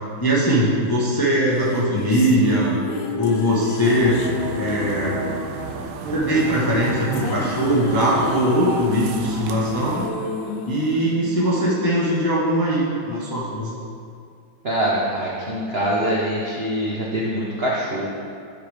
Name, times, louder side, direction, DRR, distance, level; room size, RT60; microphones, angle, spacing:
voice 1, 0.2-2.7 3.2-4.2 4.5-5.2 6.1-10.1 10.7-13.8, equal, 20° left, -7 dB, 0.5 m, -21 dB
sound 1, 1.6-12.0, left 4 dB, 75° left, 1.3 m, -31 dB
sound 2, 3.8-10.1, right 5 dB, 90° right, 1.5 m, -32 dB
voice 2, 14.6-18.1, equal, 60° right, -5 dB, 0.6 m, -24 dB
10.0 x 4.9 x 3.4 m, 2.4 s
omnidirectional pair, 2.2 m